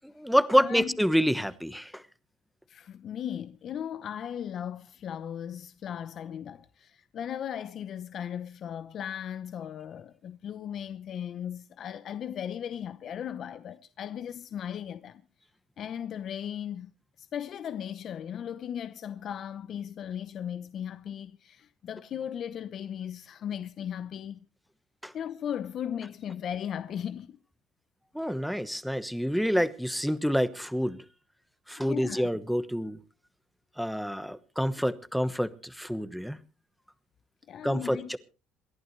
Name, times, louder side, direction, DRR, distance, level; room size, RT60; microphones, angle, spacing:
voice 1, 0.0-2.0 25.0-25.1 28.1-31.0 31.7-33.0 33.8-36.4 37.6-38.2, equal, ahead, 1.1 m, -27 dB
voice 2, 0.6-0.9 2.7-15.2 15.8-16.9 17.2-24.4 25.1-27.4 31.8-32.3 37.5-38.1, left 9 dB, 55° left, 0.8 m, -37 dB
27.5 x 11.0 x 3.2 m
supercardioid pair, 95°, 0 cm